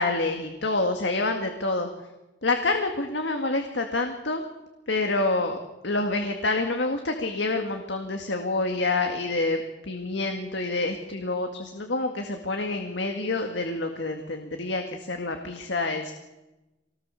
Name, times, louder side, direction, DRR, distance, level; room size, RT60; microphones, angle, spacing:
voice 1, 0.0-1.9 2.4-4.4 4.9-5.6 5.8-16.1, left 2 dB, 75° left, 5 dB, 2.0 m, -27 dB
24.5 x 19.0 x 7.0 m, 1.0 s
head